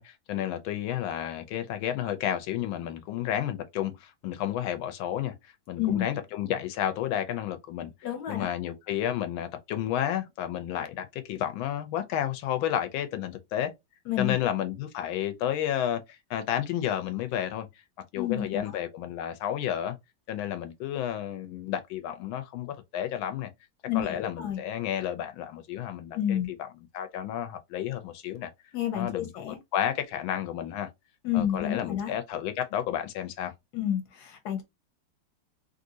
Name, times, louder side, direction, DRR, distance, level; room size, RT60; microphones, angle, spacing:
voice 1, 0.0-7.9 8.3-13.7 14.2-17.7 18.1-20.0 20.3-23.5 23.9-26.7 26.9-28.5 28.9-29.3 29.7-30.9 31.3-33.5, left 11 dB, 85° left, 1.4 m, -31 dB
voice 2, 5.8-6.1 8.0-8.5 14.1-14.4 18.1-18.7 23.9-24.6 26.1-26.5 28.7-29.6 31.2-32.2 33.7-34.6, left 10 dB, 60° left, 1.3 m, -30 dB
3.2 x 2.7 x 2.6 m
omnidirectional pair, 2.2 m